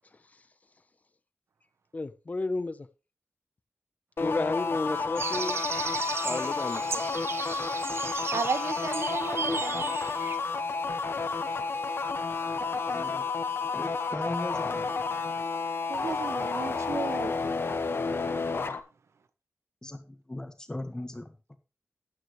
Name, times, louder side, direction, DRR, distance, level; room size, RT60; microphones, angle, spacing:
voice 1, 1.9-2.8 4.2-5.6 6.2-7.1, left 3 dB, 35° left, 0.8 m, -32 dB
sound 1, 4.2-18.8, left 4 dB, 60° left, 1.1 m, -31 dB
sound 2, 5.2-10.4, right 5 dB, 65° right, 0.6 m, -35 dB
voice 2, 8.3-10.0 15.9-17.3, right 5 dB, 85° right, 1.0 m, -34 dB
voice 3, 12.9-13.3 13.7-15.0 19.8-21.6, left 1 dB, 15° left, 1.5 m, -38 dB
13.0 x 9.5 x 3.2 m
wide cardioid pair, 110°, 5 cm